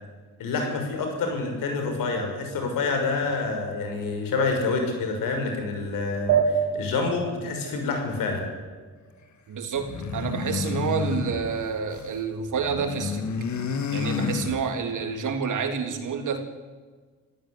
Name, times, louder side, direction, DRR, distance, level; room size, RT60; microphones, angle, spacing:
voice 1, 0.4-8.5, left 3 dB, 80° left, 4 dB, 6.2 m, -27 dB
sound 1, 6.3-9.2, right 7 dB, 80° right, 3.5 m, -28 dB
voice 2, 9.5-13.2 13.9-16.4, right 6 dB, 65° right, 5 dB, 3.5 m, -29 dB
sound 2, 9.8-12.2 12.5-15.0, left 5 dB, 60° left, 2.6 m, -30 dB
26.5 x 15.0 x 9.8 m, 1.4 s
supercardioid pair, 65°, 33 cm